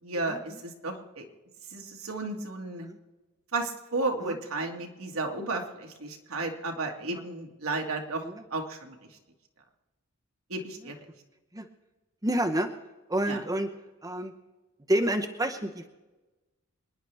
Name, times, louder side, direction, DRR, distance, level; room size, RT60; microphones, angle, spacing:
voice 1, 0.0-1.3 1.7-2.9 3.5-9.2 10.5-11.0 13.3-13.4, right 3 dB, 75° right, 2 dB, 1.9 m, -33 dB
voice 2, 12.2-12.7 13.1-13.7 14.0-14.3 14.9-15.9, right 1 dB, 15° right, 5 dB, 0.8 m, -28 dB
28.0 x 10.5 x 3.4 m, 1.1 s
head